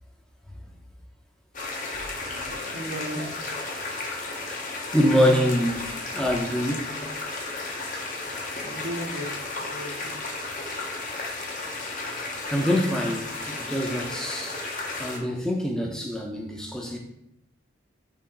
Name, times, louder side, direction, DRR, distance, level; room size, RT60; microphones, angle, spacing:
sound 1, 1.5-15.2, left 3 dB, 40° left, 0.7 m, -33 dB
voice 1, 2.1-3.5 7.8-10.2, right 1 dB, 65° right, 0.8 m, -37 dB
voice 2, 4.9-6.9 12.5-14.6 15.0-17.0, equal, 5° left, 0.5 m, -25 dB
3.7 x 3.0 x 4.4 m
head